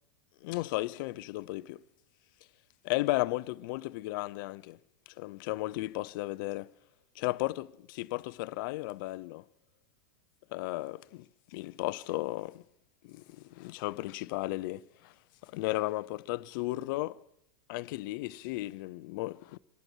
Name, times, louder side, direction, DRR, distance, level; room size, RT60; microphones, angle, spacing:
voice 1, 0.4-1.8 2.8-4.8 5.2-6.7 7.2-9.4 10.5-12.6 13.0-15.1 15.4-17.2 17.7-19.6, left 19 dB, 60° left, 0.6 m, -35 dB
27.5 x 11.5 x 4.5 m
hypercardioid pair, 115°, 13 cm